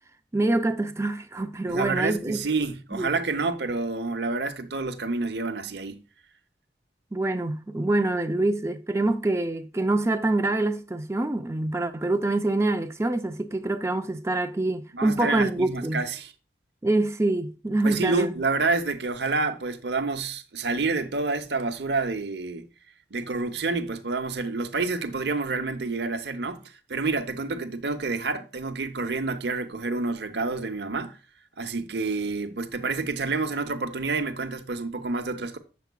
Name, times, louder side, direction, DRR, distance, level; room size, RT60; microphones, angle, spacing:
voice 1, 0.3-2.4 2.9-3.1 7.1-16.1 16.8-18.3, right 2 dB, 15° right, 0.4 m, -25 dB
voice 2, 1.7-6.0 14.9-16.3 17.8-22.6 23.1-26.6 26.9-31.2 31.6-35.6, right 3 dB, 70° right, 0.8 m, -28 dB
8.1 x 7.0 x 2.2 m
head